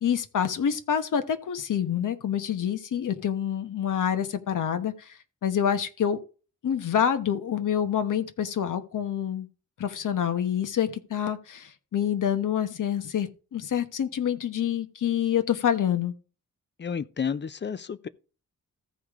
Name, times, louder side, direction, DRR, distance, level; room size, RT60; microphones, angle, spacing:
voice 1, 0.0-5.1 5.4-6.2 6.6-9.5 9.8-16.1, left 9 dB, 90° left, 1.1 m, -27 dB
voice 2, 16.8-18.1, left 6 dB, 35° left, 0.5 m, -31 dB
14.5 x 4.9 x 3.6 m
wide cardioid pair, 125°, 30 cm